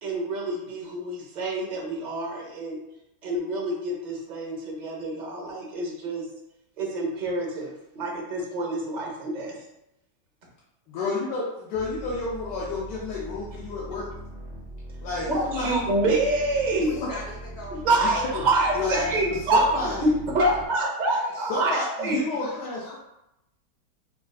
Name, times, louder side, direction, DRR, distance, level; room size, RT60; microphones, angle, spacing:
voice 1, 0.0-2.8 3.2-6.2 6.8-9.6 15.2-16.9 17.8-19.7 20.0-22.2, right 2 dB, 45° right, -2 dB, 0.6 m, -26 dB
voice 2, 10.9-14.1 15.0-15.7 17.0-17.1 18.0-18.4 18.7-20.2 21.5-23.0, left 3 dB, 75° left, -5 dB, 1.3 m, -30 dB
sound 1, 11.7-20.7, right 1 dB, 45° left, 0.9 m, -41 dB
voice 3, 16.8-18.3 18.7-19.2 19.7-19.9 20.4-20.6 21.1-21.5 22.0-23.0, left 1 dB, 60° left, -5 dB, 1.7 m, -41 dB
5.4 x 2.4 x 2.3 m, 0.85 s
omnidirectional pair, 1.9 m